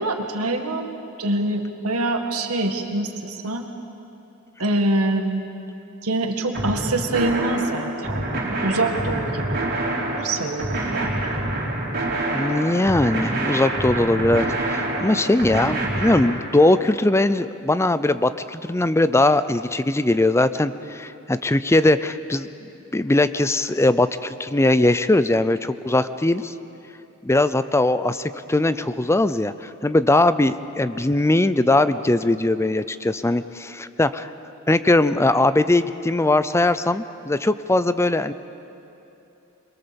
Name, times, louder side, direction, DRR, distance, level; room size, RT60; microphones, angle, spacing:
voice 1, 0.0-3.7 4.6-5.4 6.0-9.6 10.2-11.1, right 2 dB, 75° right, 4 dB, 1.9 m, -25 dB
sound 1, 6.5-16.2, right 1 dB, 45° right, 4.2 m, -26 dB
voice 2, 12.3-22.5 22.9-26.5 27.2-34.3 34.7-38.3, left 2 dB, 10° left, 13 dB, 0.5 m, -20 dB
23.0 x 22.5 x 7.1 m, 3.0 s
head